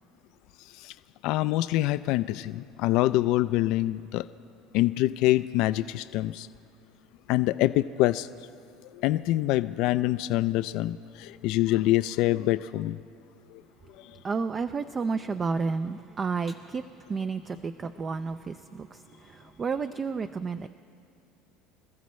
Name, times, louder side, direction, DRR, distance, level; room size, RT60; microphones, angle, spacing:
voice 1, 1.2-4.2 4.7-6.5 7.3-8.3 9.0-13.0, left 16 dB, 65° left, 13 dB, 0.3 m, -25 dB
voice 2, 14.2-20.7, right 4 dB, 30° right, 10 dB, 0.4 m, -31 dB
25.5 x 14.5 x 3.2 m, 2.4 s
supercardioid pair, 110°, 0 cm